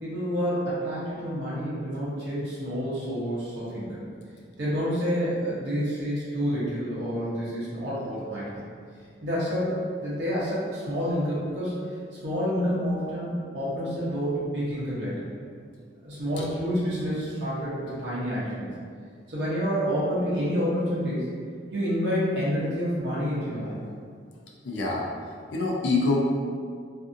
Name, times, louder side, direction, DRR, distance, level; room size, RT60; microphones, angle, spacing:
voice 1, 0.0-4.0 4.6-8.6 9.2-11.8 12.2-15.2 16.0-18.7 19.3-21.3 21.7-23.7, equal, 70° right, -9 dB, 0.8 m, -28 dB
voice 2, 24.6-26.2, left 3 dB, 85° left, -3 dB, 0.5 m, -26 dB
2.6 x 2.5 x 2.5 m, 2.1 s
head